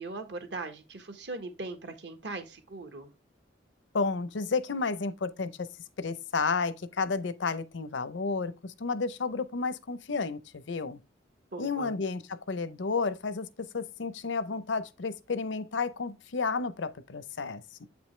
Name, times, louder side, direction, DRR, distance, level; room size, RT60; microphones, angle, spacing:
voice 1, 0.0-3.1 11.5-11.9, right 3 dB, 60° right, 1.3 m, -39 dB
voice 2, 3.9-5.7 6.0-11.0 11.6-17.9, left 4 dB, 80° left, 0.6 m, -32 dB
7.9 x 5.2 x 3.2 m
head